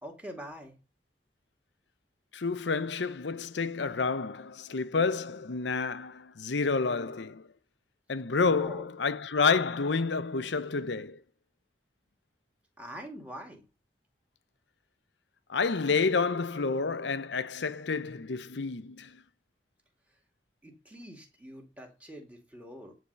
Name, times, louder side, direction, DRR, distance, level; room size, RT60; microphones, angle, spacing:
voice 1, 0.0-0.8 8.3-8.9 12.8-13.6 20.6-23.0, equal, 10° right, 2.2 m, -44 dB
voice 2, 2.3-7.5 8.1-11.2 15.5-19.2, left 4 dB, 80° left, 0.7 m, -29 dB
9.9 x 3.8 x 6.8 m
head